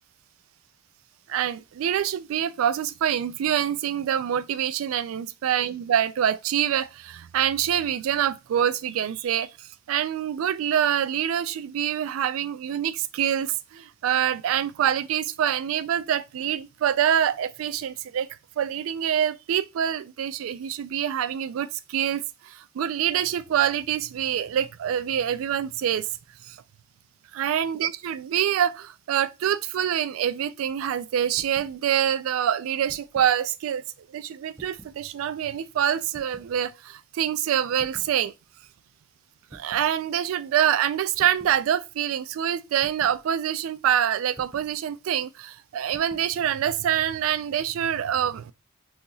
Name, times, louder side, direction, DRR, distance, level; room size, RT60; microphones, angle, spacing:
voice 1, 1.3-18.3 18.6-26.1 26.5-26.6 27.3-33.8 34.1-38.3 39.5-48.5, right 9 dB, 80° right, 0.3 m, -26 dB
sound 1, 31.4-31.8 32.7-33.4 34.5-35.0 36.1-36.5 37.8-38.2 39.5-39.9 41.1-41.6 42.8-43.2 44.3-44.7 45.9-46.3, right 1 dB, 15° right, 0.4 m, -49 dB
2.8 x 2.4 x 3.9 m
head